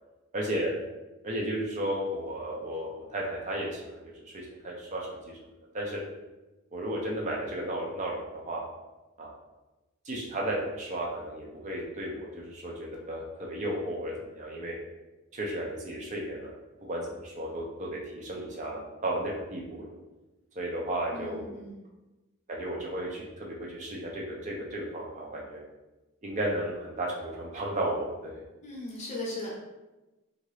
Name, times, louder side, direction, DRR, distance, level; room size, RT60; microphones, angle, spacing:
voice 1, 0.3-0.8 1.2-5.4 5.7-6.0 6.7-8.6 9.2-9.3 10.0-14.8 15.3-16.5 16.9-19.9 20.6-21.5 22.5-25.6 26.2-28.4, right 1 dB, 35° right, -2 dB, 0.5 m, -34 dB
voice 2, 21.1-21.8 28.6-29.5, left 2 dB, 30° left, -4 dB, 0.7 m, -38 dB
2.8 x 2.5 x 3.1 m, 1.1 s
head